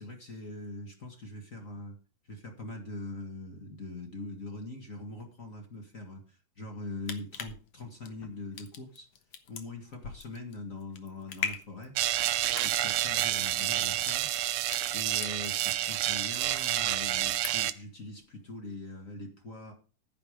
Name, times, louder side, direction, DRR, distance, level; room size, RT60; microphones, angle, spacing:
voice 1, 0.0-2.0 2.3-9.1 9.5-11.9 12.6-14.3 14.9-19.7, left 2 dB, 30° left, 3 dB, 1.8 m, -42 dB
sound 1, 6.8-15.8 16.1-16.9 17.2-17.8 18.2-18.3, left 7 dB, 60° left, 2.2 m, -41 dB
sound 2, 12.0-17.7, right 14 dB, 80° right, 1.5 m, -29 dB
10.0 x 9.9 x 5.2 m, 0.36 s
omnidirectional pair, 3.6 m